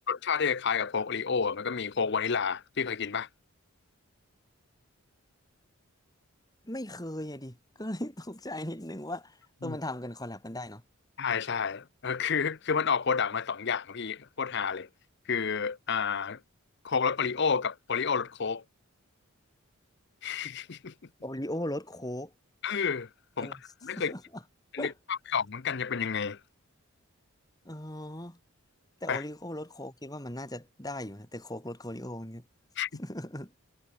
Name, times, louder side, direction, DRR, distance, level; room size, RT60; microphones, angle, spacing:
voice 1, 0.1-3.3 9.6-9.7 11.2-14.9 15.2-16.4 16.8-18.6 20.2-20.9 22.6-23.1 23.4-24.1 24.7-26.4 29.1-29.2 32.8-32.9, left 6 dB, 50° left, 0.7 m, -30 dB
voice 2, 6.7-10.8 21.2-22.3 23.4-23.6 24.0-24.4 24.8-24.9 27.6-28.4 29.0-32.4 33.0-33.5, left 1 dB, 15° left, 4.0 m, -38 dB
head